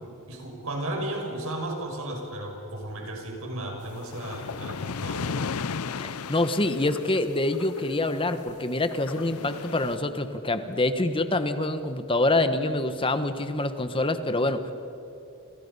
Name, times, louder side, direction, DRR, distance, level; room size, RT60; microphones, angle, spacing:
voice 1, 0.0-5.3, right 1 dB, 70° right, 1 dB, 6.2 m, -34 dB
sound 1, 3.8-8.5 8.8-10.0, left 5 dB, 80° left, 0.7 m, -35 dB
voice 2, 6.0-14.7, left 2 dB, 25° left, 9 dB, 1.3 m, -26 dB
29.5 x 27.0 x 5.6 m, 3.0 s
head